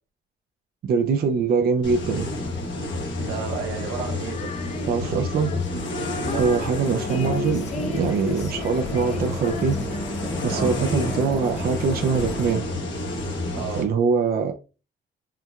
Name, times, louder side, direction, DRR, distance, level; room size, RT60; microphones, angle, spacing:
voice 1, 0.8-2.3 4.9-5.5 6.4-9.8 10.4-12.6 13.8-14.5, right 5 dB, 50° right, 0.4 m, -23 dB
sound 1, 1.8-13.8, left 2 dB, 70° left, 1.0 m, -30 dB
voice 2, 3.2-4.5 4.8-5.3 6.2-6.5 10.5-10.8 13.5-13.9, right 6 dB, 90° right, 1.0 m, -33 dB
Female singing, 4.2-11.6, left 5 dB, 35° left, 0.5 m, -36 dB
sound 2, 6.2-12.5, left 1 dB, 5° left, 0.8 m, -35 dB
4.5 x 2.2 x 2.3 m
cardioid pair, 90°, 20 cm